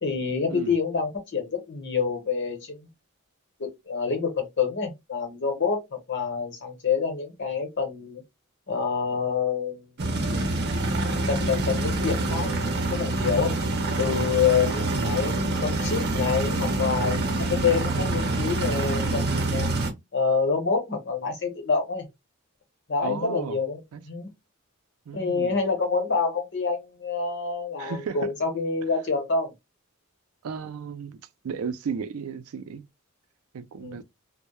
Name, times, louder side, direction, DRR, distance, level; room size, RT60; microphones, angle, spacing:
voice 1, 0.0-2.9 3.6-8.2 8.7-9.9 11.3-13.5 14.0-15.3 15.6-19.7 20.1-22.1 22.9-24.3 25.1-29.5 33.8-34.0, left 5 dB, 55° left, 0.9 m, -27 dB
sound 1, 10.0-19.9, right 2 dB, 50° right, 0.7 m, -26 dB
voice 2, 14.5-15.4 23.0-23.6 23.9-24.0 25.1-25.6 27.8-28.3 30.4-31.2 31.4-32.8 33.5-34.0, right 6 dB, 80° right, 0.4 m, -34 dB
2.2 x 2.0 x 2.9 m
head